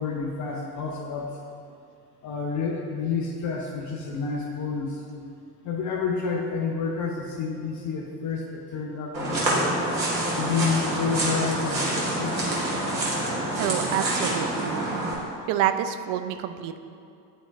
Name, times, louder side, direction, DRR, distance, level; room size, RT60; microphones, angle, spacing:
voice 1, 0.0-1.4 2.2-5.0 5.6-9.7 10.4-12.4, left 5 dB, 35° left, 1 dB, 0.7 m, -29 dB
sound 1, 9.1-15.1, right 1 dB, 85° right, 1.3 m, -27 dB
voice 2, 13.6-14.9 15.5-16.8, right 10 dB, 40° right, 9 dB, 0.4 m, -27 dB
10.0 x 4.3 x 2.7 m, 2.5 s
figure-of-eight pair, 60°, 50 cm